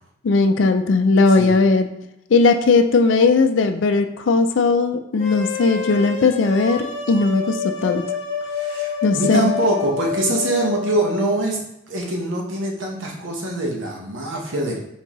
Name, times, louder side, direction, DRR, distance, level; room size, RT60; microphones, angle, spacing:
voice 1, 0.2-1.9 2.3-8.1 9.0-9.5, left 3 dB, 65° left, 8 dB, 0.4 m, -17 dB
sound 1, 5.2-11.4, left 7 dB, 35° left, 1.0 m, -28 dB
voice 2, 8.4-11.6 11.9-14.8, right 1 dB, 70° right, -1 dB, 1.0 m, -23 dB
4.4 x 3.7 x 3.0 m, 0.83 s
head